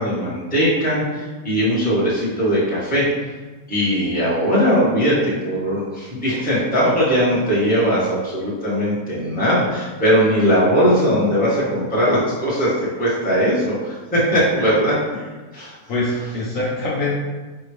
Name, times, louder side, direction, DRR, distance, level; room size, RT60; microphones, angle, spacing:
voice 1, 0.0-3.1 3.7-12.7 13.0-15.0 15.5-15.7, equal, 5° left, -10 dB, 1.3 m, -19 dB
voice 2, 15.9-17.1, left 2 dB, 60° left, -7 dB, 1.1 m, -24 dB
4.6 x 2.8 x 3.3 m, 1.3 s
omnidirectional pair, 1.7 m